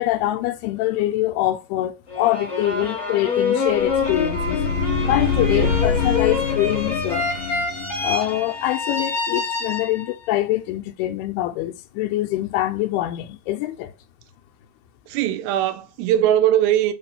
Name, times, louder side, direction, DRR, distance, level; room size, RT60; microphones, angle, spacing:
voice 1, 0.0-4.6 5.0-7.3 8.0-13.9, left 15 dB, 85° left, 2.7 m, -24 dB
sound 1, 2.1-10.3, left 4 dB, 25° left, 1.6 m, -26 dB
sound 2, 3.8-8.4, left 6 dB, 55° left, 2.9 m, -25 dB
voice 2, 15.1-16.9, right 11 dB, 80° right, 2.6 m, -20 dB
6.8 x 3.0 x 5.6 m
omnidirectional pair, 4.5 m